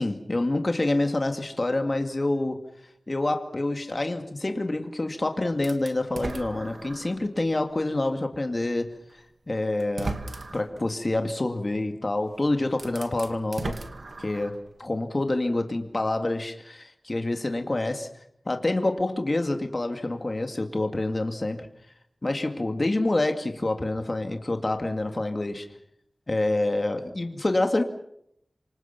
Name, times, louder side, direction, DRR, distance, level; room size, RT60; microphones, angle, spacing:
voice 1, 0.0-2.6 3.1-8.9 9.5-10.2 10.5-13.7 14.2-18.1 18.5-21.7 22.2-25.7 26.3-27.8, left 2 dB, 40° left, 5 dB, 2.2 m, -27 dB
sound 1, 5.6-7.3 7.8-7.9 9.1-9.2 9.8-10.8 12.2-12.3 12.7-14.7, right 3 dB, 70° right, 2.3 m, -37 dB
27.5 x 25.5 x 6.0 m, 0.73 s
wide cardioid pair, 70°, 0 cm